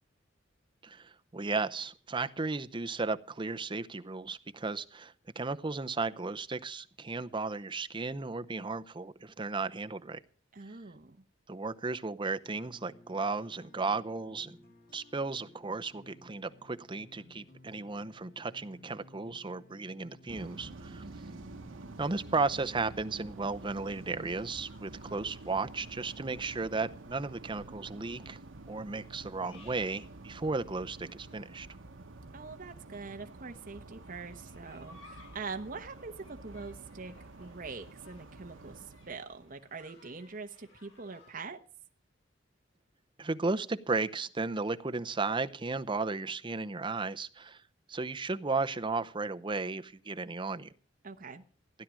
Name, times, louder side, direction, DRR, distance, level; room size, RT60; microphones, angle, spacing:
voice 1, 0.8-10.2 11.5-14.6 14.9-21.0 22.0-28.4 28.7-31.7 43.2-47.6 47.9-50.7, right 3 dB, 25° right, 10 dB, 0.7 m, -34 dB
voice 2, 10.5-11.2 21.0-21.4 32.3-37.1 37.4-41.6 51.0-51.4, right 4 dB, 45° right, 5 dB, 1.0 m, -44 dB
sound 1, 12.4-22.4, left 1 dB, 50° left, 3.1 m, -57 dB
sound 2, 20.3-39.7, right 2 dB, 85° right, 1.0 m, -49 dB
sound 3, 23.4-41.3, left 2 dB, 90° left, 7.6 m, -61 dB
16.0 x 10.5 x 6.2 m, 0.44 s
head